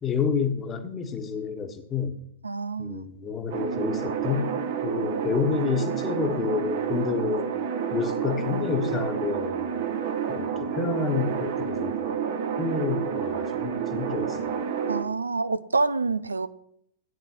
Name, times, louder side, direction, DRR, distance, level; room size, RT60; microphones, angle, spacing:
voice 1, 0.0-2.2 2.8-4.5 4.8-7.5 7.9-9.7 10.3-12.0 12.6-14.5, left 5 dB, 20° left, 1.5 m, -29 dB
voice 2, 2.4-3.0 14.9-16.5, right 3 dB, 80° right, 0.6 m, -27 dB
sound 1, 3.5-15.0, right 7 dB, 50° right, 1.3 m, -29 dB
17.0 x 9.9 x 3.0 m
figure-of-eight pair, 100°, 0 cm